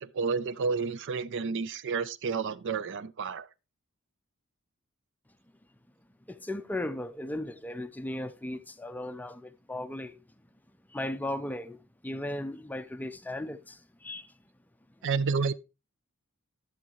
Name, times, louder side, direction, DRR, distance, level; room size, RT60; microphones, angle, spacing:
voice 1, 0.0-3.5 15.0-15.5, right 5 dB, 55° right, 0.5 m, -30 dB
voice 2, 6.3-10.2 10.9-11.8 12.0-14.3, left 1 dB, 10° left, 0.5 m, -36 dB
12.5 x 7.2 x 3.0 m
head